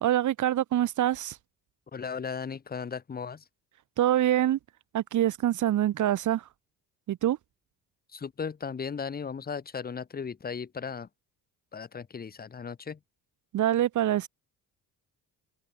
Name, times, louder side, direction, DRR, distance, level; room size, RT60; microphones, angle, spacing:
voice 1, 0.0-1.4 4.0-4.6 4.9-6.4 7.1-7.4 13.5-14.3, right 12 dB, 45° right, 0.6 m, -25 dB
voice 2, 1.9-3.4 8.1-11.1 11.7-13.0, left 6 dB, 20° left, 0.7 m, -36 dB
supercardioid pair, 65°, 42 cm